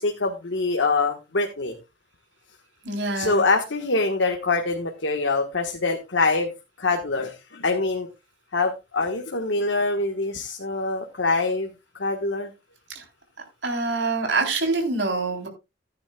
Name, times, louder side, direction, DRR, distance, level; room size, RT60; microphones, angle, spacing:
voice 1, 0.0-1.7 3.1-6.5 6.8-8.1 8.5-11.7 11.9-12.5, left 3 dB, 85° left, 3 dB, 1.5 m, -24 dB
voice 2, 2.9-3.4 13.6-15.5, right 3 dB, 75° right, 3 dB, 3.7 m, -25 dB
15.5 x 9.6 x 2.4 m, 0.25 s
head